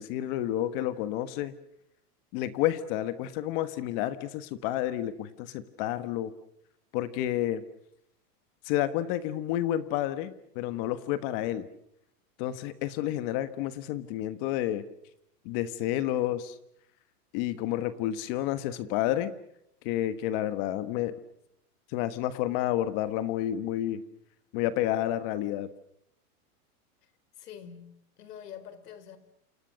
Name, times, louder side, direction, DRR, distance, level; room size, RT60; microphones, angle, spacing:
voice 1, 0.0-1.5 2.3-6.3 6.9-7.6 8.6-11.7 12.4-14.8 15.4-16.6 17.3-19.3 19.8-21.1 21.9-24.0 24.5-25.7, left 13 dB, 35° left, 1.4 m, -30 dB
voice 2, 27.4-29.2, left 8 dB, 75° left, 4.3 m, -46 dB
28.5 x 28.0 x 6.5 m
supercardioid pair, 160°, 47 cm